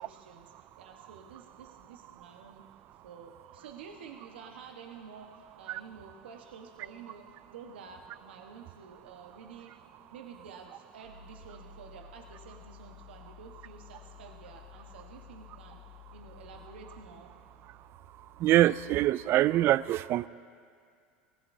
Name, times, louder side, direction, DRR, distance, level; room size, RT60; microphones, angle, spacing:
voice 1, 0.0-2.7 3.0-9.8 10.1-15.8 16.1-17.3, right 6 dB, 85° right, 3 dB, 1.2 m, -50 dB
sound 1, 11.0-19.6, left 8 dB, 70° right, 4.5 m, -54 dB
voice 2, 18.4-20.3, right 14 dB, 45° right, 19 dB, 0.4 m, -24 dB
23.5 x 17.5 x 2.7 m, 2.2 s
hypercardioid pair, 100°, 6 cm